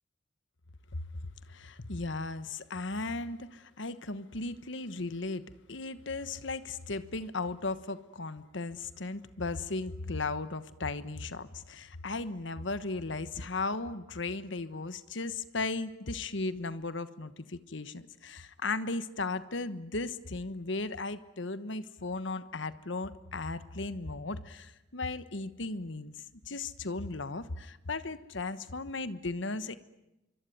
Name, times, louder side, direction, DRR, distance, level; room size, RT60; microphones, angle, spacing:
voice 1, 1.5-26.1 26.5-29.7, left 3 dB, 65° left, 13 dB, 1.2 m, -36 dB
26.0 x 24.0 x 9.4 m, 0.94 s
head